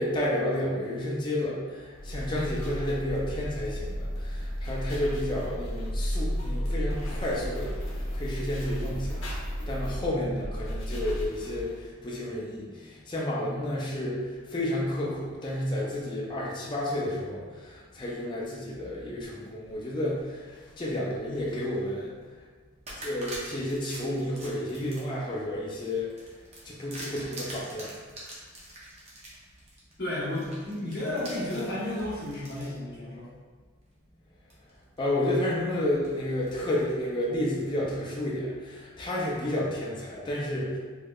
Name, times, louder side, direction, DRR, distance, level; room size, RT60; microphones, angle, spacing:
voice 1, 0.0-22.1 23.0-26.1 26.6-27.9 35.0-40.8, left 1 dB, 20° left, -4 dB, 0.4 m, -31 dB
sound 1, 1.9-11.9, equal, 75° left, 0.8 m, -33 dB
sound 2, 19.0-20.2 20.8-21.7 22.2-22.3 22.9-32.8 33.4-33.5 34.5-35.0 35.4-37.0, right 1 dB, 30° right, 0.7 m, -45 dB
voice 2, 30.0-33.3, left 1 dB, 50° left, -9 dB, 1.2 m, -32 dB
3.5 x 3.1 x 2.3 m, 1.5 s
head